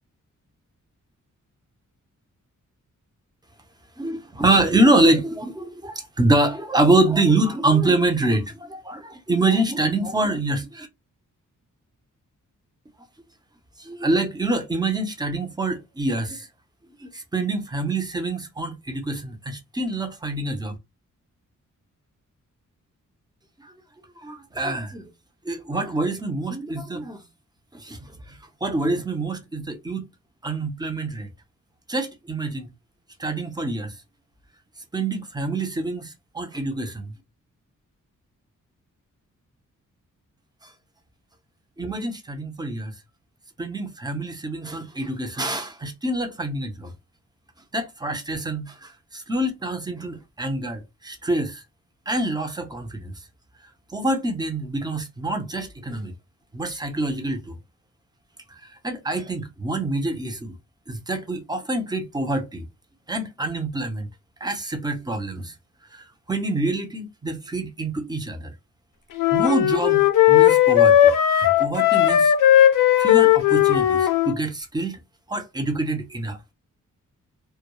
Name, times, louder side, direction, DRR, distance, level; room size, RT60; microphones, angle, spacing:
voice 1, 4.0-10.9 13.8-16.5 17.0-20.8 23.6-23.7 24.2-25.1 25.4-27.2 27.7-28.0 28.3-30.0 30.4-31.3 31.9-32.7 33.2-34.0 34.9-37.1 40.6-40.7 41.8-42.9 43.6-46.9 47.7-51.6 52.1-53.1 53.9-56.1 56.5-57.6 58.5-60.5 60.9-62.7 63.1-64.1 64.4-65.5 65.9-68.5 69.3-71.1 71.4-72.3 73.0-75.0 75.3-76.5, right 2 dB, 15° right, 0.6 m, -25 dB
sound 1, 69.2-74.3, left 11 dB, 85° left, 0.5 m, -16 dB
2.2 x 2.1 x 2.9 m
wide cardioid pair, 95°, 31 cm